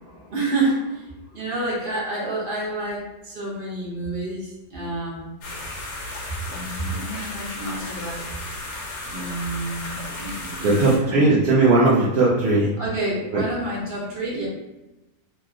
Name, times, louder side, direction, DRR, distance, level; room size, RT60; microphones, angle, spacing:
voice 1, 0.0-5.3 6.5-8.3 9.0-11.2 12.8-14.5, right 2 dB, 40° right, -5 dB, 0.9 m, -29 dB
sound 1, 5.4-11.0, left 2 dB, 90° left, 1.2 m, -34 dB
voice 2, 10.6-12.7 13.3-13.4, right 2 dB, 65° right, -6 dB, 0.6 m, -18 dB
2.9 x 2.8 x 2.4 m, 1.0 s
omnidirectional pair, 1.7 m